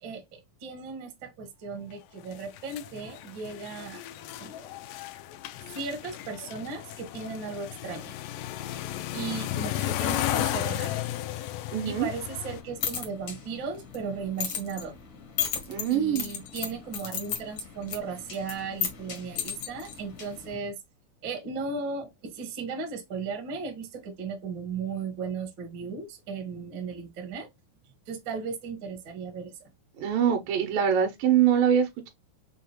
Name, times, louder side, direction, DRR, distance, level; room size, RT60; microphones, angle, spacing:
voice 1, 0.0-4.0 4.4-4.7 5.7-8.1 9.1-10.9 11.8-14.9 15.9-20.8 21.2-27.5 28.1-29.7, right 5 dB, 55° right, 1.3 m, -36 dB
sound 1, 2.3-12.6, left 13 dB, 80° left, 2.2 m, -34 dB
voice 2, 11.7-12.1 15.7-16.3 30.0-32.1, right 9 dB, 75° right, 2.4 m, -24 dB
sound 2, 12.5-20.6, left 8 dB, 60° left, 1.3 m, -36 dB
6.2 x 2.4 x 2.8 m
omnidirectional pair, 4.2 m